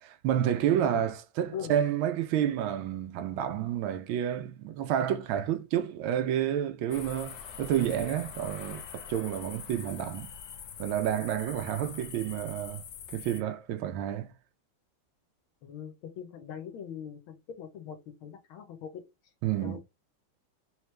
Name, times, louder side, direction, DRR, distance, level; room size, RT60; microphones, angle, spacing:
voice 1, 0.0-10.3 10.8-12.8 13.1-14.3 19.4-19.8, right 10 dB, 80° right, 1.5 m, -30 dB
sound 1, 6.9-13.4, left 7 dB, 65° left, 1.1 m, -44 dB
voice 2, 15.6-19.0 19.6-19.8, left 8 dB, 85° left, 1.8 m, -41 dB
4.0 x 3.2 x 3.2 m
omnidirectional pair, 2.2 m